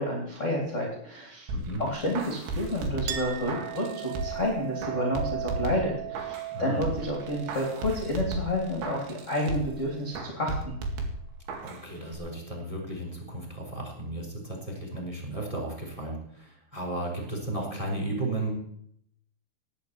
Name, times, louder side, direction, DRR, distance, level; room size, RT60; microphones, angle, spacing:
voice 1, 0.0-1.5 1.8-10.7, left 1 dB, 20° left, 1 dB, 2.0 m, -30 dB
voice 2, 1.5-1.8 6.5-6.8 11.6-18.5, right 1 dB, 5° right, 2 dB, 4.0 m, -34 dB
sound 1, 1.5-4.5 4.8-6.5 6.8-9.8 10.1-11.8 12.1-12.2, right 2 dB, 65° right, 4.3 m, -35 dB
Chink clink, 3.1-10.1, right 14 dB, 85° right, 2.0 m, -39 dB
18.5 x 7.0 x 9.5 m, 0.70 s
omnidirectional pair, 5.9 m